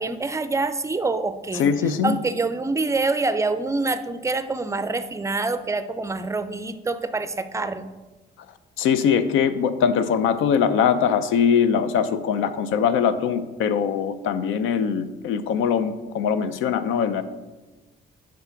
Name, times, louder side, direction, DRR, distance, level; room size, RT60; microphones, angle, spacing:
voice 1, 0.0-1.6 2.0-7.9, right 3 dB, 15° right, 11 dB, 0.4 m, -26 dB
voice 2, 1.5-2.2 8.8-17.2, left 7 dB, 90° left, 12 dB, 0.5 m, -22 dB
5.7 x 3.7 x 5.7 m, 1.1 s
cardioid pair, 90°, 20 cm